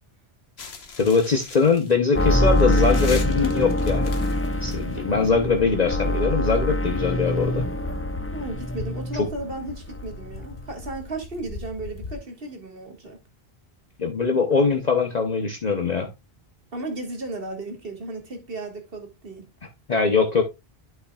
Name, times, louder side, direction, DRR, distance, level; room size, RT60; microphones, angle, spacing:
sound 1, 0.6-12.2, left 3 dB, 85° left, 1.4 m, -39 dB
voice 1, 1.0-4.1 4.6-7.7 14.0-16.1 19.9-20.4, left 5 dB, 45° left, 0.9 m, -22 dB
sound 2, 2.1-9.6 9.9-10.6 10.8-10.9, left 1 dB, 20° left, 0.4 m, -24 dB
voice 2, 8.3-13.2 16.7-19.5, right 2 dB, 65° right, 1.9 m, -35 dB
11.0 x 5.8 x 2.3 m
omnidirectional pair, 1.0 m